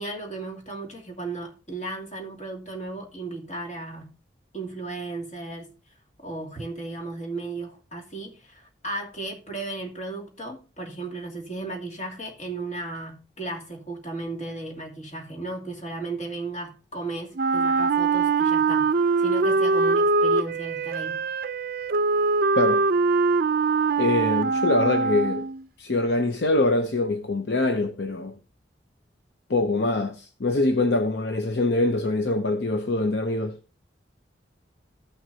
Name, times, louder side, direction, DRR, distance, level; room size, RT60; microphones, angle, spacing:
voice 1, 0.0-4.1 4.5-5.7 6.2-18.9 19.2-21.2, right 2 dB, 40° left, 2.5 m, -35 dB
Wind instrument woodwind instrument, 17.3-25.6, right 4 dB, 50° right, 0.4 m, -22 dB
voice 2, 24.0-25.5 25.8-28.3 29.5-33.6, left 2 dB, 65° left, 0.7 m, -24 dB
14.5 x 6.1 x 2.8 m
head